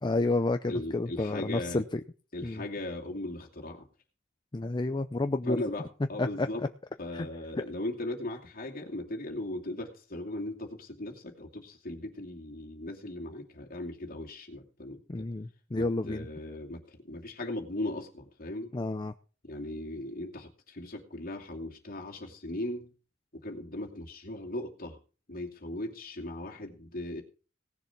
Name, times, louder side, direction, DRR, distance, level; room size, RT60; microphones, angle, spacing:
voice 1, 0.0-2.0 2.4-2.6 4.5-5.6 6.2-6.5 7.1-7.3 7.6-7.7 15.1-16.3 18.7-19.1, left 2 dB, 25° left, 8 dB, 0.5 m, -30 dB
voice 2, 0.7-1.8 2.3-3.9 5.5-6.6 7.0-15.3 15.7-18.7 19.4-22.9 23.3-25.0 25.3-27.2, left 1 dB, 50° left, 1 dB, 2.6 m, -38 dB
18.0 x 6.9 x 5.8 m, 0.37 s
head